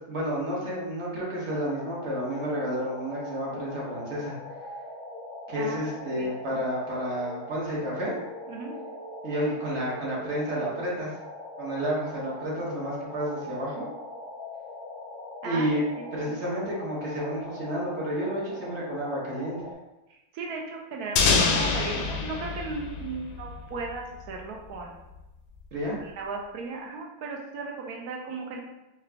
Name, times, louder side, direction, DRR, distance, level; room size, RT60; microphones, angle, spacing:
voice 1, 0.0-4.3 5.5-8.2 9.2-11.1 11.6-13.9 15.4-15.8 16.1-19.6 25.7-26.0, equal, 45° right, -5 dB, 1.2 m, -30 dB
sound 1, 1.4-19.7, left 1 dB, 40° left, 0.6 m, -41 dB
voice 2, 5.6-6.6 8.5-8.7 15.4-15.7 16.0-16.1 20.1-24.9 25.9-28.6, right 4 dB, 70° right, 0 dB, 1.0 m, -36 dB
sound 2, 21.2-23.9, left 4 dB, 75° left, 1.1 m, -25 dB
4.7 x 2.3 x 3.3 m, 0.99 s
omnidirectional pair, 1.9 m